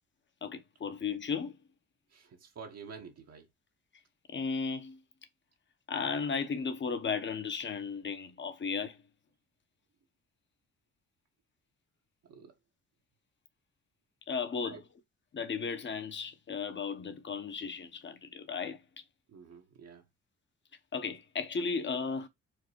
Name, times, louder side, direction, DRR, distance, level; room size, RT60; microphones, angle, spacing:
voice 1, 0.4-1.6 4.3-5.0 5.9-9.0 14.3-14.8 15.3-18.8 20.9-22.3, left 5 dB, 40° left, 1.0 m, -35 dB
voice 2, 2.1-3.5 12.3-12.5 14.6-14.8 19.3-20.0, right 5 dB, 55° right, 1.1 m, -49 dB
4.6 x 2.2 x 4.5 m
cardioid pair, 90°, 30 cm